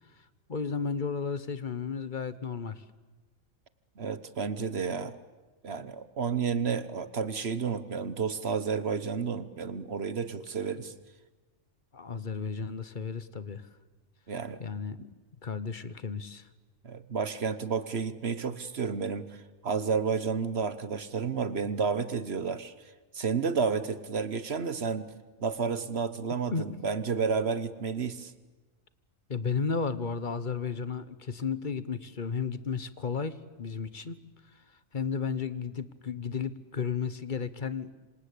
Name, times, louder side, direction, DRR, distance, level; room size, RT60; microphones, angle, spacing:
voice 1, 0.5-2.8 11.9-13.7 14.6-15.1 15.4-16.5 26.5-26.6 29.3-34.2 34.5-34.6 34.9-37.9, left 5 dB, 40° left, 14 dB, 1.2 m, -33 dB
voice 2, 4.0-5.2 5.6-10.9 14.3-14.6 16.8-22.7 23.1-25.1 25.4-28.3, right 5 dB, 55° right, 14 dB, 1.3 m, -31 dB
26.5 x 26.0 x 8.5 m, 1.2 s
omnidirectional pair, 1.3 m